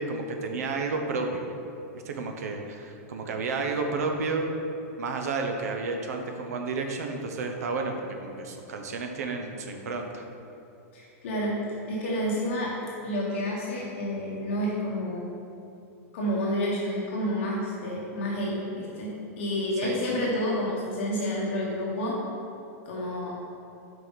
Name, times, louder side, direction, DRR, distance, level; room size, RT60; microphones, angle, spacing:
voice 1, 0.0-1.5 1.9-4.5 5.0-10.2 19.8-20.0, right 3 dB, 85° right, 4 dB, 0.8 m, -31 dB
voice 2, 10.9-11.6 11.9-12.7 13.0-15.2 16.1-22.2 22.8-23.3, equal, 50° left, -4 dB, 1.3 m, -29 dB
7.6 x 5.0 x 4.0 m, 2.7 s
supercardioid pair, 180°, 8 cm